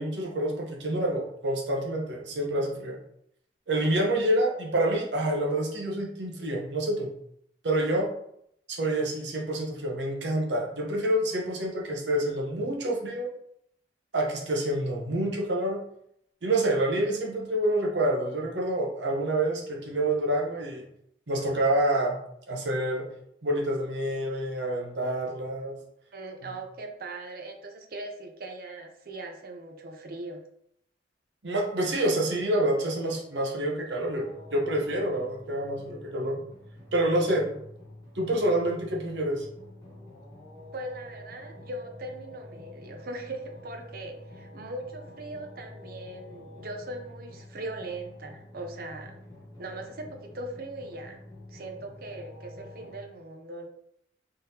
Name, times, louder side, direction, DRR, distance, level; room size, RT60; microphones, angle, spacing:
voice 1, 0.0-3.0 3.7-7.1 7.6-8.1 8.7-13.3 14.1-15.8 16.4-20.8 21.3-22.2 22.5-23.1 23.4-25.7 31.4-36.4 36.9-37.5 38.1-39.5, right 1 dB, 75° right, 0 dB, 0.9 m, -27 dB
voice 2, 26.1-30.4 40.7-49.2 49.6-51.2 51.5-53.7, right 2 dB, 55° right, 4 dB, 0.6 m, -40 dB
sound 1, 34.0-53.0, left 1 dB, 20° left, 1.0 m, -48 dB
3.8 x 3.3 x 2.8 m, 0.73 s
head